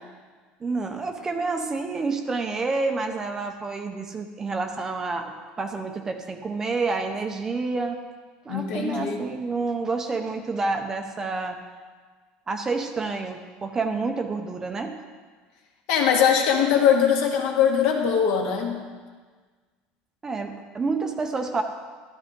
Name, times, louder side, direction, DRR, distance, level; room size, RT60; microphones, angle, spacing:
voice 1, 0.6-8.0 8.4-11.6 12.5-15.0 20.2-21.6, right 3 dB, 15° right, 5 dB, 0.6 m, -28 dB
voice 2, 8.5-9.2 15.9-18.8, left 8 dB, 65° left, 1 dB, 2.0 m, -21 dB
12.5 x 12.5 x 3.7 m, 1.5 s
cardioid pair, 175°, 3 cm